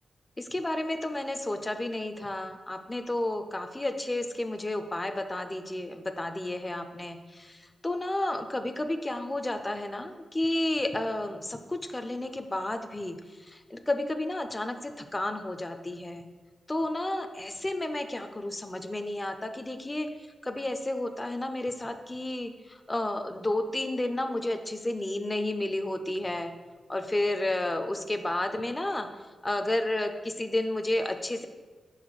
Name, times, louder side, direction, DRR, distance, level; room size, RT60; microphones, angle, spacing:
voice 1, 0.4-16.3 16.7-20.1 20.4-26.5 26.9-29.1 29.4-31.5, left 1 dB, 15° left, 7 dB, 0.4 m, -31 dB
5.1 x 4.0 x 4.7 m, 1.4 s
wide cardioid pair, 135°, 0 cm